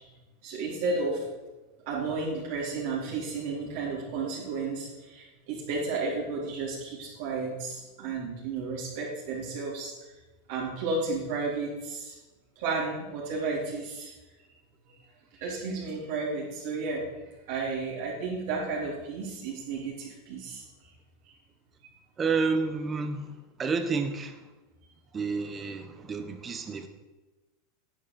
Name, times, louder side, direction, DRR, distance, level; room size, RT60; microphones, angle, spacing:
voice 1, 0.4-1.2 1.9-9.9 10.5-12.2 12.6-14.1 15.3-17.1 17.5-20.6, right 3 dB, 65° right, -5 dB, 4.2 m, -32 dB
voice 2, 22.2-23.3 23.6-24.4 25.1-26.9, right 4 dB, 25° right, 8 dB, 1.4 m, -30 dB
10.5 x 7.6 x 7.3 m, 1.1 s
supercardioid pair, 125°, 0 cm